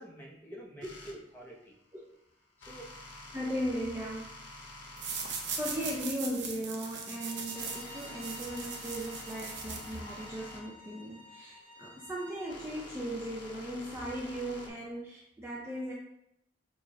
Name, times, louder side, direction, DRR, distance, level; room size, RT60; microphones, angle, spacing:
voice 1, 0.0-1.8 2.6-3.0, right 1 dB, 10° left, -3 dB, 0.9 m, -48 dB
sound 1, 0.8-1.2 2.6-6.1 6.7-14.7, left 2 dB, 80° left, 0.9 m, -48 dB
voice 2, 3.3-4.3 5.1-15.9, equal, 10° right, -4 dB, 0.5 m, -37 dB
sound 2, 5.0-10.3, right 5 dB, 75° right, 0.8 m, -40 dB
Bowed string instrument, 7.0-12.5, left 2 dB, 25° left, 1.2 m, -52 dB
6.7 x 2.5 x 3.2 m, 0.77 s
head